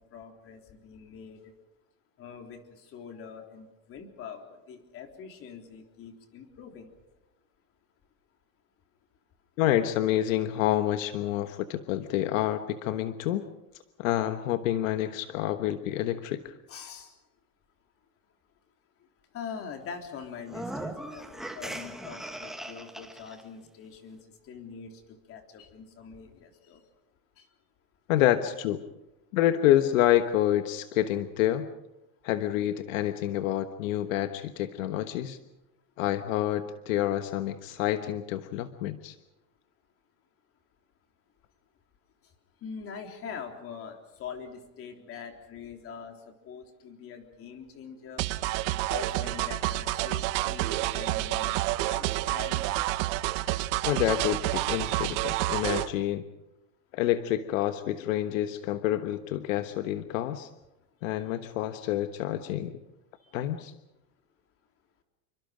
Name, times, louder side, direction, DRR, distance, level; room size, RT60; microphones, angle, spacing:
voice 1, 0.1-1.5 2.2-6.9 16.7-17.1 19.3-26.8 27.4-27.5 42.6-48.3 48.9-52.6 63.2-63.3, left 6 dB, 35° left, 4 dB, 3.6 m, -43 dB
voice 2, 9.6-13.4 14.0-16.5 28.1-28.8 29.3-31.7 32.2-35.4 36.0-39.1 53.8-56.3 56.9-60.5 61.0-62.8 63.3-63.7, left 13 dB, 75° left, 9 dB, 1.4 m, -28 dB
sound 1, 20.4-23.4, right 1 dB, ahead, 1.3 m, -39 dB
sound 2, 48.2-55.9, right 17 dB, 50° right, 1.0 m, -29 dB
28.0 x 24.5 x 5.1 m, 0.94 s
supercardioid pair, 155°, 40 cm